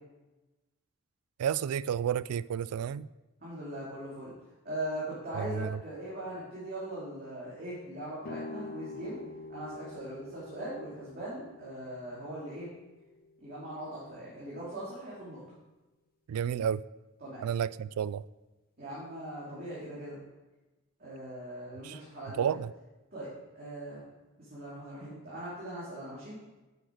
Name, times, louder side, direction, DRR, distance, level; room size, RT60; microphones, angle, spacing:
voice 1, 1.4-3.1 5.4-5.7 16.3-16.8 17.4-18.2 21.8-22.0 22.4-22.7, right 8 dB, 85° right, 0.3 m, -31 dB
voice 2, 3.4-4.3 4.6-9.2 9.5-12.7 13.4-15.4 17.2-17.4 18.8-20.2 21.0-22.4 23.1-24.0 24.5-26.4, right 1 dB, 45° right, 2.6 m, -40 dB
sound 1, 8.2-14.0, left 3 dB, 40° left, 0.7 m, -46 dB
9.8 x 6.4 x 4.6 m
head